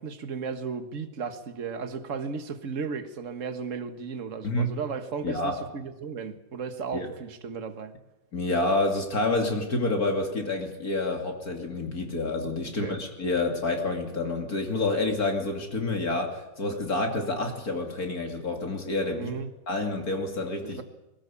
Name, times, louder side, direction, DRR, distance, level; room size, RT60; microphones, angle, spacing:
voice 1, 0.0-8.0 12.8-13.0 19.1-19.5 20.6-20.8, right 5 dB, 45° right, 9 dB, 1.8 m, -35 dB
voice 2, 5.2-5.6 6.9-7.1 8.3-19.3 19.7-20.8, left 2 dB, 55° left, 3 dB, 3.1 m, -28 dB
22.0 x 18.5 x 8.5 m, 1.0 s
omnidirectional pair, 2.0 m